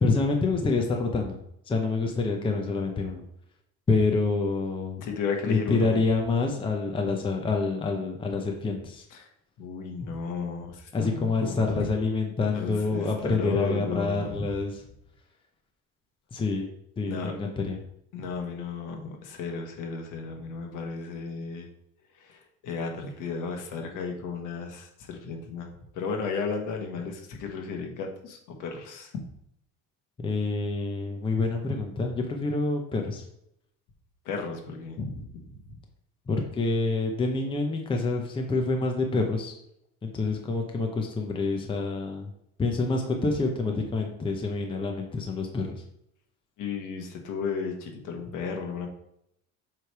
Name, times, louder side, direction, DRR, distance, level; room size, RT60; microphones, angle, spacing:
voice 1, 0.0-1.4 1.7-3.2 3.9-5.0 5.5-9.0 10.9-14.8 16.3-16.7 17.0-17.8 30.2-33.2 36.3-39.5 40.0-42.3 42.6-45.8, left 3 dB, 15° left, 2 dB, 0.6 m, -27 dB
voice 2, 5.0-6.0 9.1-9.3 9.6-11.9 12.5-14.5 17.0-17.3 18.1-21.7 22.2-25.7 25.9-29.1 34.2-35.3 46.6-48.9, left 5 dB, 65° left, 2 dB, 1.4 m, -34 dB
7.5 x 3.3 x 4.6 m, 0.76 s
cardioid pair, 150°, 34 cm